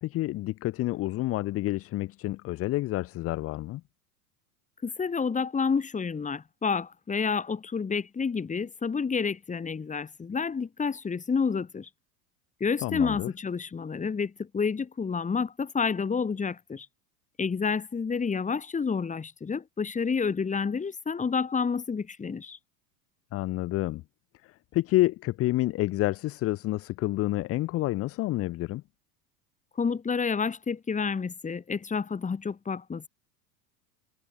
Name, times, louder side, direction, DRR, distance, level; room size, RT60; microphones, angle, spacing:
voice 1, 0.0-3.8 12.8-13.3 23.3-24.0 24.7-28.8, left 17 dB, 30° left, 0.5 m, -28 dB
voice 2, 4.8-11.9 12.6-16.9 17.4-22.6 29.8-33.1, left 5 dB, 15° left, 1.6 m, -29 dB
supercardioid pair, 110°, 49 cm